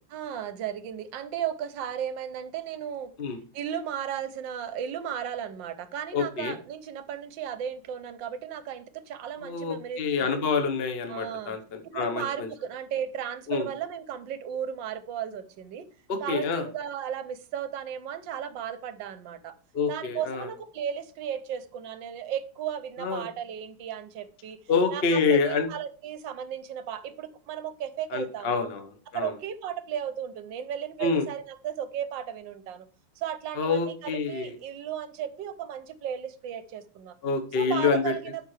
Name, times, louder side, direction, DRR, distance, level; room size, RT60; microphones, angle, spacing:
voice 1, 0.1-3.1 3.5-10.3 11.1-11.6 11.8-15.9 16.2-19.5 19.9-24.6 24.9-28.7 29.1-32.9 33.2-37.2 37.5-38.4, right 9 dB, 70° right, 13 dB, 1.3 m, -35 dB
voice 2, 6.1-6.5 9.4-12.5 13.5-13.7 16.1-16.6 19.7-20.5 23.0-23.3 24.7-25.7 28.1-28.8 29.1-29.3 31.0-31.3 33.6-34.5 37.2-38.1, left 5 dB, 40° left, 6 dB, 0.9 m, -27 dB
12.5 x 5.1 x 3.3 m, 0.39 s
omnidirectional pair, 2.3 m